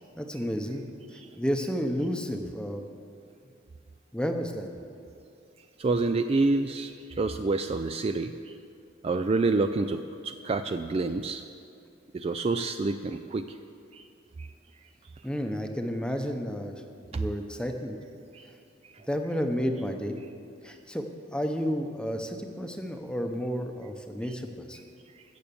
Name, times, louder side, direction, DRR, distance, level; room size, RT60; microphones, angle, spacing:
voice 1, 0.1-0.9 1.4-2.8 4.1-4.7 15.2-16.8 17.1-18.0 19.1-20.2 20.6-21.1 21.3-24.8, equal, 5° left, 4 dB, 0.8 m, -31 dB
voice 2, 5.8-8.5 9.0-11.4 12.1-13.5 13.9-14.0 14.4-14.5 17.1-17.2 18.3-18.5, right 3 dB, 30° right, 9 dB, 0.3 m, -28 dB
15.5 x 7.1 x 7.0 m, 2.4 s
head